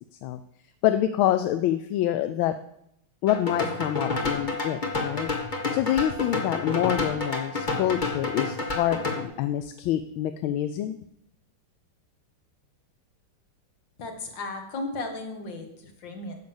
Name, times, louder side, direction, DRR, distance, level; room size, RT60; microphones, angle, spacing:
voice 1, 0.8-2.5 3.2-11.0, left 12 dB, 75° left, 10 dB, 1.3 m, -26 dB
sound 1, 3.3-9.2, left 3 dB, 25° left, 1.2 m, -29 dB
voice 2, 14.0-16.4, left 2 dB, 55° left, 4 dB, 2.3 m, -35 dB
10.5 x 6.6 x 7.1 m, 0.77 s
omnidirectional pair, 2.4 m